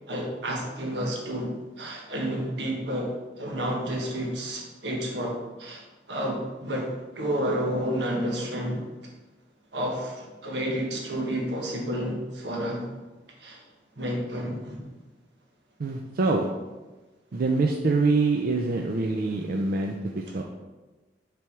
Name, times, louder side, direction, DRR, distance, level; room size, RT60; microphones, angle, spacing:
voice 1, 0.1-8.8 9.7-12.9 13.4-13.6 14.0-14.8 20.3-20.4, equal, 80° right, 0 dB, 1.3 m, -30 dB
voice 2, 15.8-16.5 17.3-20.4, right 3 dB, 55° right, 2 dB, 0.4 m, -25 dB
5.9 x 3.5 x 4.6 m, 1.2 s
head